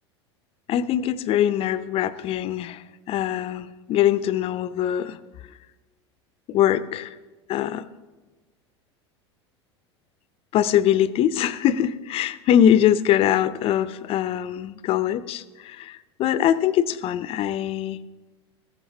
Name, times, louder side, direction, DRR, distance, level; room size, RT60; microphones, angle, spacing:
voice 1, 0.7-5.2 6.5-7.1 7.5-7.8 10.5-18.0, left 10 dB, 40° left, 15 dB, 0.5 m, -22 dB
14.5 x 12.0 x 2.8 m, 1.2 s
hypercardioid pair, 85°, 15 cm